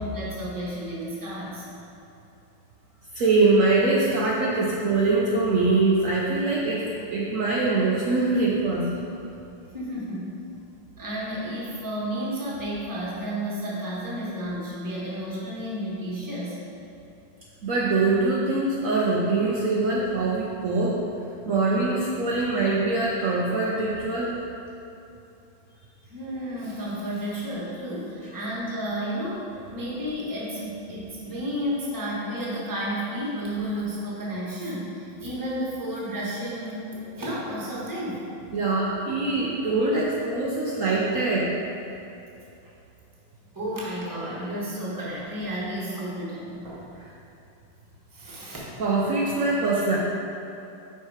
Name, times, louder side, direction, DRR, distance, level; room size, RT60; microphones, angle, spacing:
voice 1, 0.0-1.6 9.7-10.3 11.0-16.6 26.1-38.2 43.5-47.0 48.1-48.7, equal, 15° right, -7 dB, 0.9 m, -32 dB
voice 2, 3.1-8.9 17.6-21.0 21.5-24.3 38.5-41.5 48.8-50.0, right 3 dB, 80° right, -5 dB, 0.7 m, -23 dB
5.8 x 4.6 x 4.8 m, 2.7 s
omnidirectional pair, 2.2 m